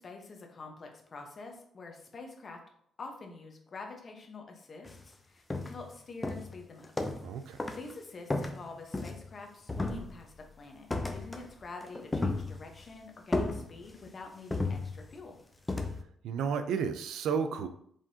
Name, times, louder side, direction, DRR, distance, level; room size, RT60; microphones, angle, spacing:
voice 1, 0.0-2.6 3.0-6.9 7.7-15.4, left 3 dB, 40° left, 2 dB, 1.0 m, -46 dB
sound 1, 4.8-5.0 5.5-5.9 6.2-7.3 7.6-7.9 8.3-9.4 9.7-10.4 10.9-11.5 11.8-12.9 13.3-14.1 14.5-15.2 15.7-16.0, left 2 dB, 20° left, 0.6 m, -34 dB
voice 2, 7.2-7.6 16.2-17.7, right 6 dB, 80° right, 9 dB, 0.4 m, -32 dB
4.9 x 3.7 x 2.8 m, 0.66 s
cardioid pair, 90°, 0 cm